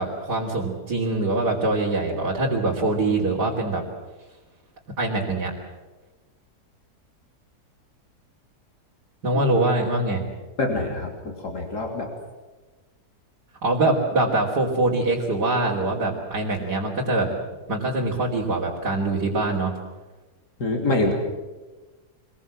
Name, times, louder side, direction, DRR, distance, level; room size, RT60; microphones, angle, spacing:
voice 1, 0.0-3.8 5.0-5.5 9.2-10.2 13.6-17.3 17.7-19.7, right 2 dB, 90° right, -4 dB, 3.7 m, -23 dB
voice 2, 10.6-12.1 20.6-21.1, left 2 dB, 80° left, 1 dB, 3.6 m, -25 dB
25.5 x 21.5 x 7.5 m, 1.2 s
omnidirectional pair, 1.7 m